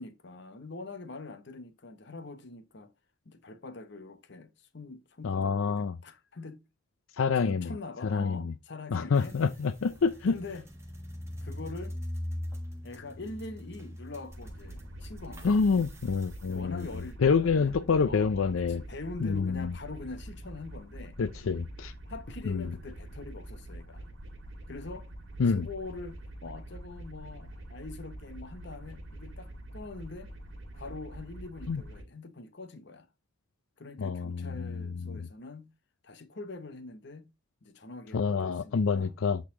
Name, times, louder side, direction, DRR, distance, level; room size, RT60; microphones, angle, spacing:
voice 1, 0.0-2.9 3.2-6.7 7.4-9.4 9.9-10.0 10.3-10.7 11.4-12.0 12.8-15.7 16.5-21.2 22.1-24.1 24.7-25.1 25.5-30.3 30.7-33.1 33.8-35.7 36.0-37.3 37.6-39.2, left 3 dB, 60° left, 0.9 m, -44 dB
voice 2, 5.2-6.0 7.2-7.7 8.0-8.5 8.9-10.4 15.4-16.9 17.2-18.8 19.2-19.7 21.2-21.9 22.5-22.7 25.4-25.7 31.7-31.8 34.0-34.7 35.1-35.3 38.1-39.4, left 5 dB, 85° left, 0.5 m, -27 dB
sound 1, 9.1-17.1, left 1 dB, 15° right, 1.4 m, -42 dB
sound 2, 14.3-32.0, right 1 dB, 70° right, 2.3 m, -45 dB
8.6 x 4.1 x 3.7 m
head